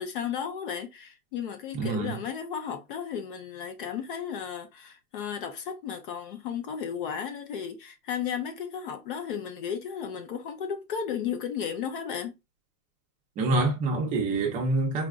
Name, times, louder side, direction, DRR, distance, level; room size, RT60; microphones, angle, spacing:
voice 1, 0.0-12.4, left 7 dB, 35° left, 0.5 m, -34 dB
voice 2, 1.7-2.2 13.4-15.1, right 2 dB, 15° right, 0.6 m, -26 dB
4.0 x 2.4 x 2.3 m
hypercardioid pair, 145°, 48 cm